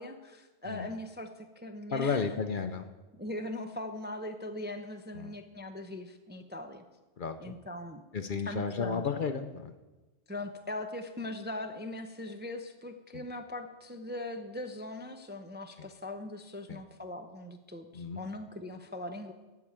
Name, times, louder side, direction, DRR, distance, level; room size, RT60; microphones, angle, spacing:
voice 1, 0.0-2.4 3.2-6.8 7.4-8.0 8.5-9.0 10.3-19.3, left 1 dB, 15° right, 6 dB, 0.5 m, -40 dB
voice 2, 1.9-2.9 5.1-5.4 7.2-7.6 8.1-9.7 13.1-13.2 15.8-15.9 16.7-16.8 17.9-18.2, left 5 dB, 55° left, 8 dB, 0.7 m, -33 dB
13.0 x 4.8 x 8.6 m, 1.2 s
omnidirectional pair, 1.2 m